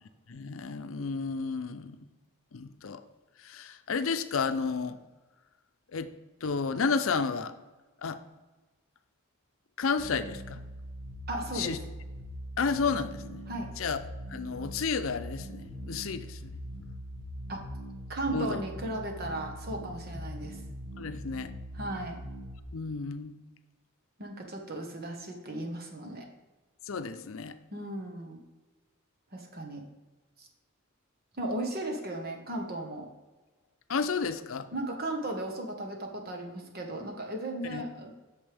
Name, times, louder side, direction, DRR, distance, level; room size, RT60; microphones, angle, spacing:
voice 1, 0.3-2.0 2.5-3.0 3.4-5.0 5.9-6.1 6.4-7.5 8.0-8.2 9.8-10.6 11.5-11.8 12.6-13.4 13.8-14.0 14.3-16.5 18.3-18.6 21.0-21.5 22.7-23.4 26.9-27.6 33.9-34.7 37.7-37.8, left 5 dB, 75° left, 10 dB, 0.6 m, -31 dB
sound 1, 10.0-22.6, equal, 85° right, 1.6 m, -42 dB
voice 2, 11.3-11.8 13.5-13.7 17.5-17.6 18.1-20.6 21.7-22.2 24.2-26.3 27.7-28.4 29.3-29.8 30.4-30.5 31.4-33.1 34.7-38.1, right 1 dB, 50° right, 3 dB, 1.3 m, -36 dB
8.7 x 6.6 x 3.5 m, 1.2 s
head